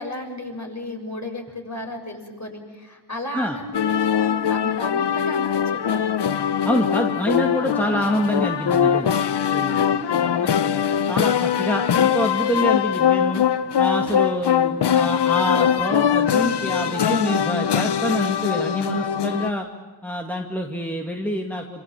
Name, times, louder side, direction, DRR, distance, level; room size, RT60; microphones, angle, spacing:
voice 1, 0.0-6.2 7.9-8.0 9.7-10.3, left 1 dB, 40° left, 2 dB, 6.8 m, -34 dB
sound 1, 3.7-19.5, left 8 dB, 65° left, 0.9 m, -21 dB
voice 2, 6.6-9.1 9.5-9.9 10.1-13.4 13.8-19.7 20.0-21.8, equal, 5° left, 1 dB, 2.3 m, -26 dB
27.0 x 24.0 x 7.6 m, 1.3 s
cardioid pair, 55°, 45 cm